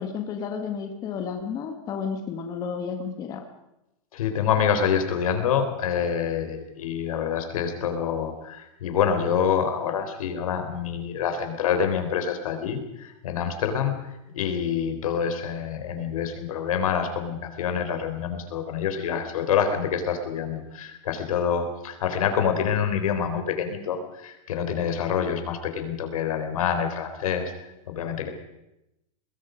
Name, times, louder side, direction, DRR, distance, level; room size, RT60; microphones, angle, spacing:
voice 1, 0.0-3.4, left 6 dB, 20° left, 5 dB, 1.7 m, -32 dB
voice 2, 4.1-28.3, left 7 dB, 85° left, 7 dB, 4.1 m, -27 dB
25.0 x 21.0 x 5.2 m, 0.89 s
supercardioid pair, 175°, 18 cm